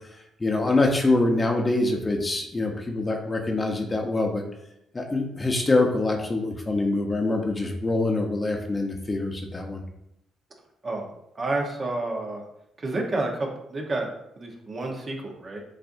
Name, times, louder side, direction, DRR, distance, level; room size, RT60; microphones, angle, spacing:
voice 1, 0.1-4.4 4.9-9.8, left 2 dB, 25° left, 2 dB, 0.9 m, -25 dB
voice 2, 11.3-12.4 12.8-14.1 14.4-15.6, right 2 dB, 40° right, 0 dB, 1.1 m, -29 dB
7.6 x 2.6 x 2.6 m, 0.81 s
supercardioid pair, 55°, 0 cm